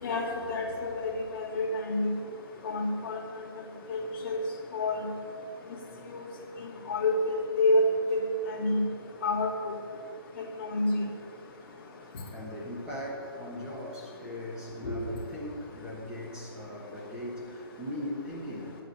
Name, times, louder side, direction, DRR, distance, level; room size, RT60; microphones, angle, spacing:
voice 1, 0.0-2.1 2.6-3.2 3.9-4.4 4.7-4.9 6.1-6.2 6.9-7.8 8.1-8.2 8.6-8.8 9.2-9.5 10.7-11.0 14.8-14.9, left 2 dB, 30° left, -6 dB, 2.5 m, -28 dB
voice 2, 12.3-18.8, left 1 dB, 5° right, -3 dB, 1.2 m, -39 dB
9.9 x 8.3 x 7.6 m, 2.3 s
hypercardioid pair, 175°, 13 cm